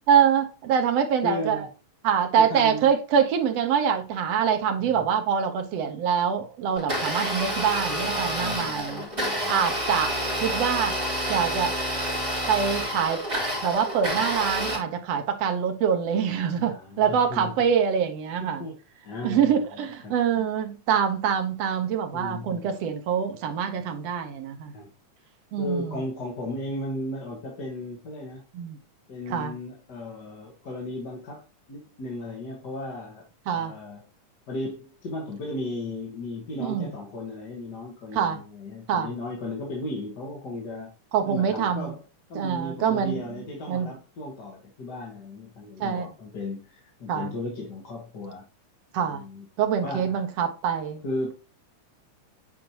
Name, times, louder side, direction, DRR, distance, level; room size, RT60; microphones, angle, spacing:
voice 1, 0.1-1.7 2.0-9.0 9.5-11.0 11.3-11.7 12.5-13.2 13.6-18.6 19.2-24.7 25.5-26.0 28.5-28.8 29.3-29.5 33.5-33.7 36.6-36.9 38.1-38.4 38.9-39.1 41.1-41.9 42.4-43.2 43.7-43.9 45.8-46.1 47.1-47.3 48.9-49.2 49.6-51.0, right 7 dB, 65° right, 1.9 m, -25 dB
voice 2, 1.2-1.7 2.4-2.9 4.8-5.1 8.4-9.6 16.7-17.5 18.4-18.8 19.0-19.6 20.0-20.5 22.1-22.7 24.7-24.9 25.6-28.4 29.1-33.2 33.5-34.0 34.5-40.9 41.2-42.0 42.3-48.4 49.0-49.5 49.8-50.2 51.0-51.3, left 2 dB, 40° left, 1.8 m, -35 dB
Domestic sounds home sounds, 6.8-14.8, equal, 15° right, 3.8 m, -28 dB
8.7 x 5.1 x 2.9 m
omnidirectional pair, 3.5 m